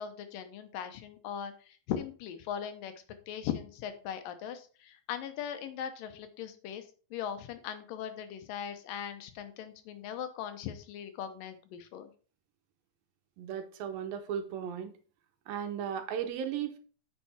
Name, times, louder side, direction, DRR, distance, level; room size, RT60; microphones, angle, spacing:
voice 1, 0.0-2.9 3.3-6.9 7.1-12.1, left 9 dB, 80° left, 9 dB, 2.5 m, -39 dB
voice 2, 13.4-14.9 15.5-16.8, right 8 dB, 85° right, 7 dB, 2.8 m, -36 dB
9.1 x 5.8 x 4.2 m, 0.39 s
omnidirectional pair, 4.1 m